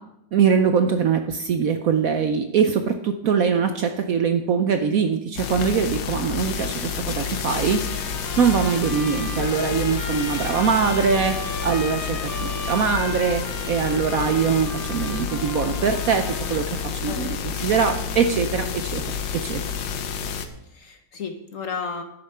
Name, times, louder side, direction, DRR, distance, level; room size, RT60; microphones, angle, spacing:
voice 1, 0.3-19.0 19.3-19.6, right 6 dB, 65° right, 7 dB, 1.0 m, -22 dB
sound 1, 5.4-20.5, left 7 dB, 80° left, 1.6 m, -29 dB
Trumpet, 7.6-16.8, left 2 dB, 15° left, 0.9 m, -36 dB
voice 2, 17.1-17.6 20.7-22.0, left 5 dB, 55° left, 6 dB, 1.1 m, -33 dB
10.5 x 8.0 x 5.6 m, 0.83 s
omnidirectional pair, 2.0 m